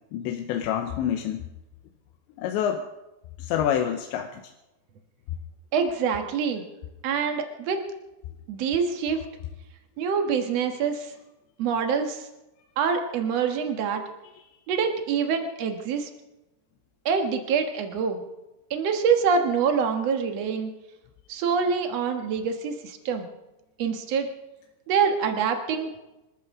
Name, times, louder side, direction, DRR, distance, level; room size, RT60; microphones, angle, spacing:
voice 1, 0.1-1.4 2.4-2.8 3.5-4.4, left 9 dB, 80° left, 4 dB, 3.1 m, -27 dB
voice 2, 5.7-6.6 7.0-7.8 8.5-9.2 10.0-11.1 11.6-12.2 12.8-14.0 14.7-16.1 17.0-18.2 18.7-20.7 21.3-23.3 23.8-24.3 24.9-25.9, right 6 dB, 80° right, 5 dB, 1.4 m, -25 dB
26.5 x 13.5 x 3.7 m, 0.98 s
omnidirectional pair, 5.2 m